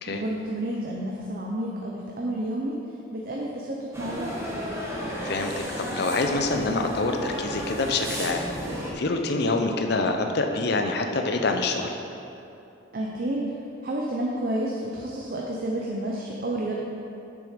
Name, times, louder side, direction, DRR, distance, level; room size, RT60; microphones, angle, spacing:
voice 1, 0.1-2.8 3.1-4.3 12.9-13.6 13.8-16.8, right 1 dB, 45° right, -2 dB, 0.7 m, -30 dB
sound 1, 3.9-8.9, equal, 15° right, 1.0 m, -33 dB
voice 2, 5.2-8.5 8.9-11.9, left 3 dB, 50° left, 4 dB, 0.6 m, -26 dB
7.0 x 6.4 x 5.0 m, 2.8 s
head